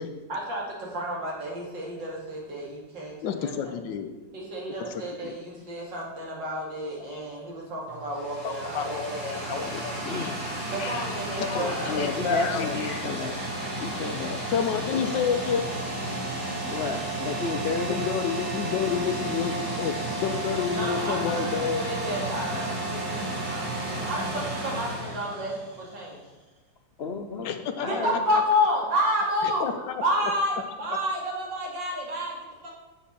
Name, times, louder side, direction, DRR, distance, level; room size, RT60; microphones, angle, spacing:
voice 1, 0.3-3.7 4.3-9.7 10.7-12.3 20.7-23.0 23.3-26.2 27.8-32.7, equal, 85° right, -3 dB, 3.1 m, -30 dB
voice 2, 3.2-4.1 4.9-5.4 8.0-8.1 8.4-10.4 10.8-11.1 11.4-13.1 14.5-15.7 17.9-20.0 20.2-21.9 27.4-27.9 29.6-30.0, left 7 dB, 85° left, 7 dB, 1.5 m, -30 dB
sound 1, 7.9-26.0, right 2 dB, 25° right, 4.1 m, -32 dB
voice 3, 9.7-10.6 11.9-13.4 13.8-14.4 14.9-15.1 16.7-18.0 27.0-27.5 27.8-28.1, left 4 dB, 60° left, 3 dB, 0.6 m, -32 dB
7.4 x 7.0 x 6.9 m, 1.2 s
omnidirectional pair, 1.9 m